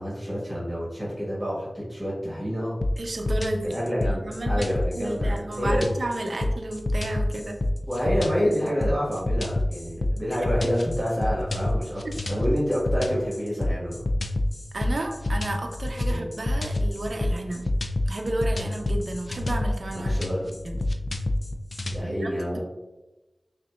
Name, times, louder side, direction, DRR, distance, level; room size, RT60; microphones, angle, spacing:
voice 1, 0.0-2.8 3.6-6.0 7.9-12.0 12.3-14.1 16.0-16.3 19.9-20.5 21.8-22.6, equal, 25° right, -6 dB, 1.5 m, -28 dB
sound 1, 2.8-22.0, left 1 dB, 55° left, 0.4 m, -27 dB
voice 2, 3.0-3.8 4.0-7.6 10.3-10.4 14.7-17.6 18.1-20.1 20.6-20.8 22.0-22.3, right 1 dB, 65° right, 3 dB, 0.6 m, -32 dB
5.8 x 2.7 x 2.4 m, 1.1 s
wide cardioid pair, 50°, 0 cm